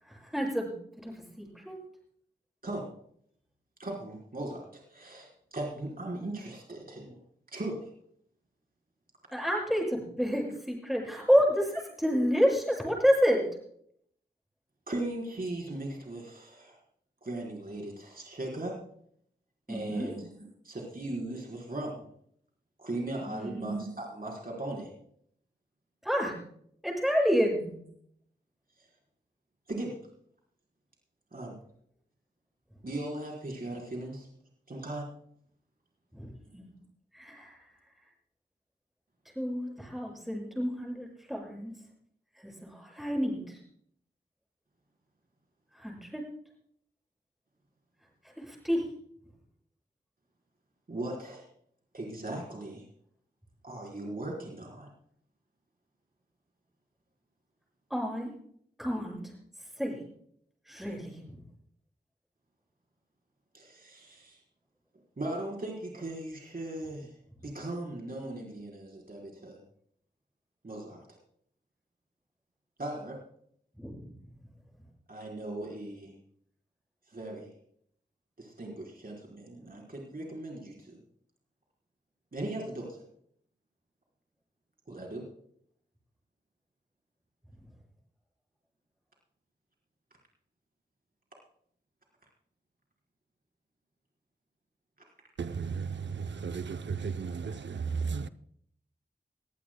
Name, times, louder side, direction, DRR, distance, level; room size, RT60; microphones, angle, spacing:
voice 1, 0.1-0.7 1.0-1.8 9.3-11.7 12.0-13.4 19.7-20.1 23.2-23.6 26.0-26.3 26.8-27.7 36.1-36.7 37.1-37.5 39.4-41.7 42.4-43.6 45.7-46.2 48.5-48.8 57.9-58.3 58.8-59.2 59.8-60.0 60.7-61.4 73.8-74.0, equal, ahead, 7.3 m, -29 dB
voice 2, 3.8-7.2 7.5-7.9 11.7-11.8 14.9-16.8 17.2-18.8 19.7-22.1 22.8-24.9 28.8-28.9 29.7-30.0 31.3-31.5 32.8-34.3 34.7-35.1 50.9-51.5 51.9-52.8 53.6-54.9 63.5-64.4 65.2-67.1 67.4-69.6 70.6-71.0 72.8-73.2 75.1-76.1 77.1-77.5 78.4-81.0 82.3-83.0 84.9-85.2, right 1 dB, 55° right, 4.2 m, -38 dB
voice 3, 95.4-95.8 96.4-98.3, right 5 dB, 90° right, 0.6 m, -34 dB
22.0 x 15.5 x 2.2 m
wide cardioid pair, 50°, 18 cm